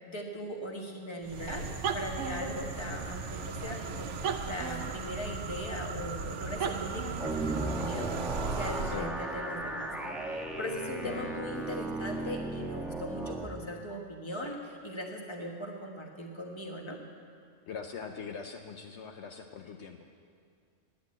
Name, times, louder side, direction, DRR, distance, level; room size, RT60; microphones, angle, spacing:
voice 1, 0.0-1.7 1.9-8.1 8.5-17.0, left 1 dB, 20° left, 1 dB, 1.3 m, -39 dB
sound 1, 1.2-9.1, right 5 dB, 70° right, 1.0 m, -36 dB
sound 2, 7.2-13.5, right 2 dB, ahead, 0.9 m, -36 dB
voice 2, 17.7-20.0, left 6 dB, 70° left, 4 dB, 0.9 m, -42 dB
10.5 x 9.6 x 8.6 m, 2.3 s
omnidirectional pair, 1.3 m